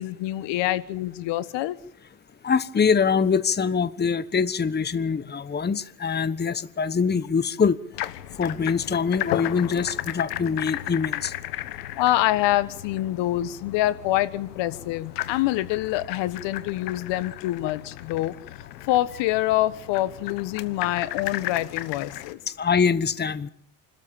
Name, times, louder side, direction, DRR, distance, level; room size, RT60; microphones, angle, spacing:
voice 1, 0.0-1.8 12.0-18.3 18.9-22.4, left 15 dB, 70° left, 15 dB, 1.5 m, -25 dB
voice 2, 2.4-7.8 8.4-11.3 22.5-23.5, left 6 dB, 20° left, 15 dB, 1.2 m, -24 dB
sound 1, 7.9-22.3, left 15 dB, 90° left, 1.3 m, -35 dB
28.5 x 13.5 x 8.8 m, 0.71 s
hypercardioid pair, 75°, 46 cm